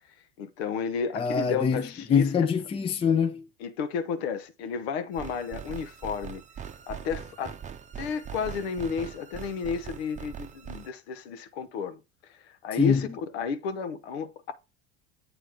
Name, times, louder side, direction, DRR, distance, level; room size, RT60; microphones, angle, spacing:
voice 1, 0.4-2.3 3.6-6.4 6.9-7.6 8.0-13.1 13.3-14.5, left 6 dB, 80° left, 0.9 m, -32 dB
voice 2, 1.1-1.8 2.1-3.5 12.8-13.1, left 6 dB, 20° left, 0.5 m, -24 dB
sound 1, 5.1-10.9, right 8 dB, 25° right, 0.7 m, -41 dB
8.0 x 3.0 x 5.0 m
hypercardioid pair, 95°, 31 cm